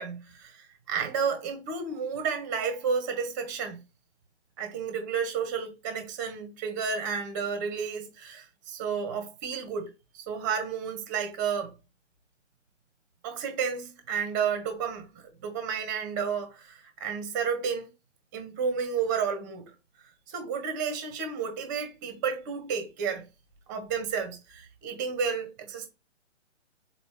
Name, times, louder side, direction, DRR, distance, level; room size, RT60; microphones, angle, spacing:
voice 1, 0.0-3.8 4.6-9.9 10.1-11.7 13.2-17.9 18.3-19.7 20.3-23.2 23.7-25.9, right 6 dB, 15° right, 0.6 m, -31 dB
3.9 x 2.9 x 3.8 m
figure-of-eight pair, 135°, 36 cm